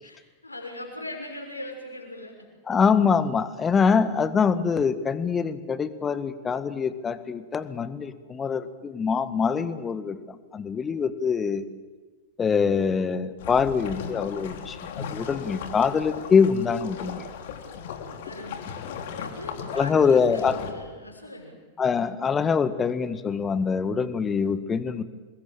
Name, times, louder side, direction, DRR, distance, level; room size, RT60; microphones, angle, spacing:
voice 1, 0.0-2.3 18.2-18.7 19.2-21.6, left 1 dB, 80° left, 2 dB, 6.3 m, -39 dB
voice 2, 2.7-11.7 12.4-17.2 19.7-20.6 21.8-25.0, left 6 dB, 20° left, 13 dB, 1.7 m, -24 dB
sound 1, 13.4-20.7, left 7 dB, 55° left, 3.1 m, -37 dB
27.0 x 22.0 x 9.1 m, 1.3 s
figure-of-eight pair, 90°, 0 cm